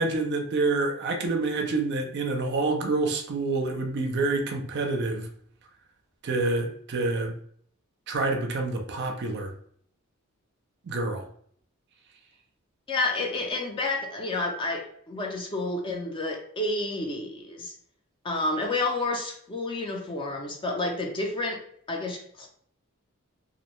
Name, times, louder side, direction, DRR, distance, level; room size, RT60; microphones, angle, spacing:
voice 1, 0.0-5.3 6.2-7.3 8.1-9.5 10.8-11.3, right 3 dB, 50° right, 4 dB, 0.4 m, -27 dB
voice 2, 12.9-17.7 18.2-21.6 21.9-22.5, left 2 dB, 25° left, 1 dB, 0.4 m, -30 dB
2.4 x 2.1 x 2.9 m, 0.62 s
head